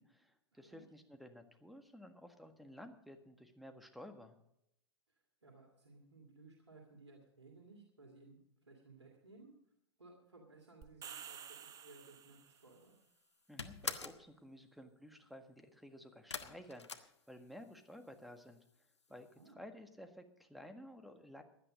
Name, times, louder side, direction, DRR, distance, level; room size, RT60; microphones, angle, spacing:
voice 1, 0.0-4.4 13.5-18.6 19.1-21.4, equal, ahead, 7 dB, 1.6 m, -54 dB
voice 2, 0.5-0.8 5.1-9.5 10.0-12.9 19.1-19.6, right 3 dB, 85° right, 0 dB, 2.5 m, -60 dB
sound 1, 10.8-12.7, right 8 dB, 25° right, 1.1 m, -51 dB
sound 2, 12.6-12.9 13.2-14.3 16.3-17.8 18.1-18.7 19.0-19.1 19.4-19.5, left 5 dB, 90° left, 1.1 m, -44 dB
16.0 x 11.0 x 5.1 m, 0.78 s
figure-of-eight pair, 100°, 14 cm